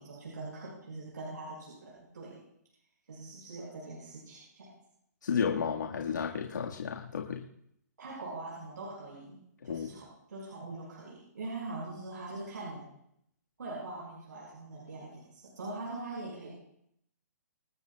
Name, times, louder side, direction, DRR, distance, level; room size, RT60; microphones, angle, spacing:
voice 1, 0.0-2.4 3.1-4.7 8.0-9.4 9.6-12.9 13.6-16.5, right 2 dB, 85° right, -5 dB, 5.5 m, -42 dB
voice 2, 5.2-7.4 9.6-9.9, left 6 dB, 90° left, 0 dB, 1.7 m, -32 dB
26.0 x 11.5 x 2.3 m, 0.73 s
hypercardioid pair, 165°, 9 cm